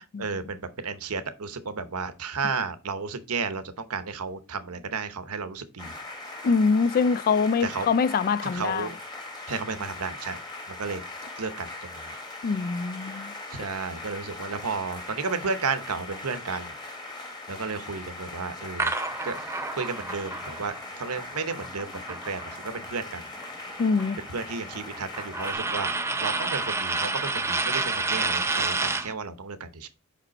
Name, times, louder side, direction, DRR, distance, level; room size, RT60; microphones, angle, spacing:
voice 1, 0.0-5.9 7.6-7.9 8.4-8.9 9.5-10.4 10.7-11.0 11.4-12.1 13.5-16.7 17.5-18.9 19.2-19.3 19.8-23.3 24.2-25.9 26.2-29.9, right 4 dB, 75° right, 0.8 m, -33 dB
sound 1, 5.8-25.6, left 2 dB, 20° left, 1.5 m, -40 dB
voice 2, 6.4-8.9 12.4-13.3 23.8-24.2, left 5 dB, 40° left, 0.3 m, -24 dB
sound 2, 18.8-22.9 23.2-29.1, right 3 dB, 10° right, 0.5 m, -30 dB
5.4 x 5.2 x 4.1 m
head